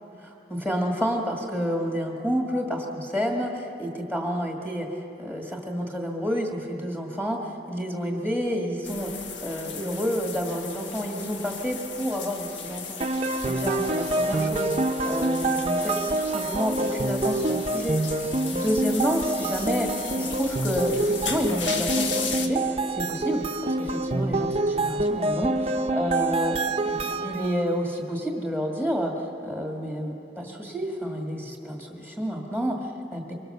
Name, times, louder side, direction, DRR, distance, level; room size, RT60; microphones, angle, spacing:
voice 1, 0.2-13.0 13.4-14.7 15.0-33.3, equal, 5° left, 0 dB, 1.8 m, -29 dB
sound 1, 8.8-22.5, left 5 dB, 90° left, 1.6 m, -36 dB
sound 2, 13.0-27.7, right 2 dB, 35° right, 0.8 m, -27 dB
24.0 x 23.5 x 6.7 m, 2.9 s
head